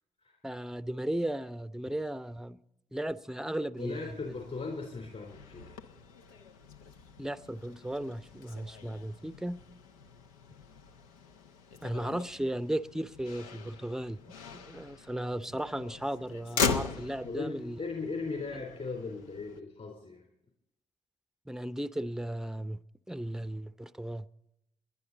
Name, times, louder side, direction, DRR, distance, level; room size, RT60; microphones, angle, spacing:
voice 1, 0.4-2.6 2.9-4.1 7.2-9.6 11.8-14.2 14.5-17.8 21.5-22.8 23.1-24.3, right 1 dB, 5° right, 15 dB, 0.7 m, -35 dB
Motor vehicle (road), 3.8-19.6, left 5 dB, 85° left, 0.7 m, -40 dB
voice 2, 3.8-5.8 17.2-20.2, left 3 dB, 45° left, 0 dB, 3.7 m, -38 dB
21.5 x 10.5 x 4.0 m, 0.85 s
hypercardioid pair, 40°, 17 cm